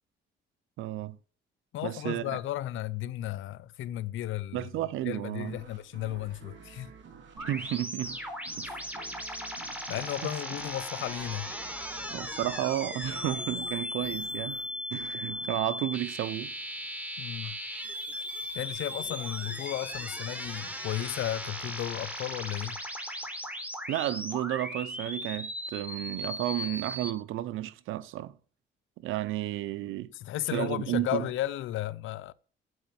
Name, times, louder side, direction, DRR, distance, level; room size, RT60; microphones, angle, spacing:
voice 1, 0.8-1.2 1.8-2.2 4.5-5.6 7.4-8.2 8.6-8.7 10.2-10.3 12.1-14.6 14.9-16.5 17.4-17.5 23.9-28.3 29.0-30.1 30.5-31.3, right 14 dB, 85° right, 0.8 m, -32 dB
voice 2, 1.7-4.7 5.0-6.9 8.6-8.8 9.9-11.5 17.2-17.6 18.5-22.8 30.1-32.3, left 13 dB, 85° left, 0.7 m, -34 dB
sound 1, 5.5-16.9, right 6 dB, 65° right, 3.0 m, -52 dB
sound 2, 7.4-27.1, equal, 5° right, 4.2 m, -37 dB
9.5 x 7.7 x 8.7 m
cardioid pair, 90°, 20 cm